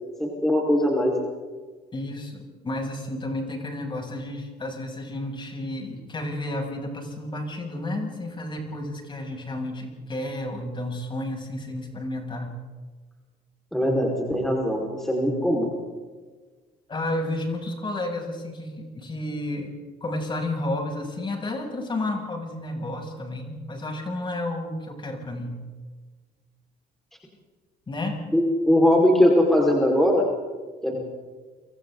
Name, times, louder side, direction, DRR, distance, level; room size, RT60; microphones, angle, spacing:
voice 1, 0.2-1.1 13.7-15.7 28.3-30.2 30.8-30.9, left 1 dB, ahead, -2 dB, 4.8 m, -20 dB
voice 2, 1.9-12.5 16.9-19.7 20.0-25.6 27.9-28.2, left 1 dB, 30° left, 1 dB, 7.1 m, -31 dB
30.0 x 25.0 x 3.9 m, 1.4 s
cardioid pair, 110°, 17 cm